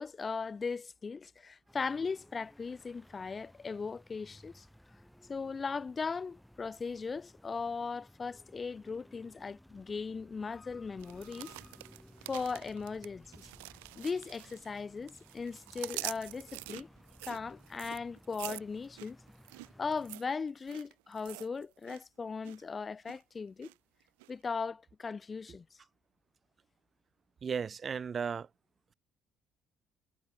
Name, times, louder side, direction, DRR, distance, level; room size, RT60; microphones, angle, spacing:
voice 1, 0.0-4.7 5.3-11.6 12.3-13.5 14.0-16.9 17.2-19.2 19.8-23.7 24.3-25.7, left 5 dB, 35° left, 2.0 m, -38 dB
sound 1, 1.7-20.2, equal, 5° left, 6.5 m, -59 dB
sound 2, 11.0-14.8 15.1-22.0 22.3-22.6 23.0-23.7 24.2-24.3, right 26 dB, 90° right, 0.6 m, -46 dB
voice 2, 27.4-28.5, right 6 dB, 45° right, 2.6 m, -35 dB
supercardioid pair, 65°, 0 cm